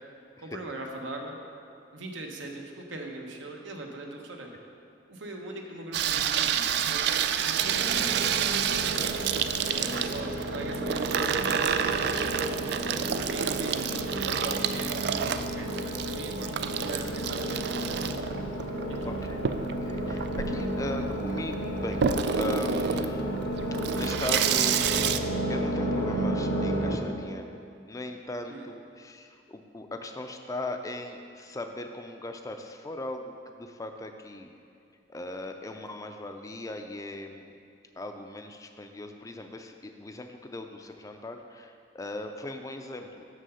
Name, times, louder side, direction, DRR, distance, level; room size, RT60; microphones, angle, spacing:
voice 1, 0.4-1.4 1.9-4.5 5.1-9.2 9.8-12.4 12.8-18.0 18.9-19.2 28.5-28.7, right 2 dB, 80° right, 1 dB, 1.0 m, -40 dB
Water tap faucet / Sink (filling or washing), 5.9-25.2, right 8 dB, 60° right, 0.3 m, -29 dB
sound 1, 7.6-26.9, right 1 dB, 85° left, 1.3 m, -32 dB
sound 2, 9.6-11.1, right 3 dB, 45° right, 1.1 m, -47 dB
voice 2, 19.1-19.4 19.8-23.3 23.9-24.8 25.5-34.5 35.1-37.5 38.0-43.3, left 2 dB, 20° left, 5 dB, 0.4 m, -38 dB
6.7 x 6.3 x 5.5 m, 2.5 s
head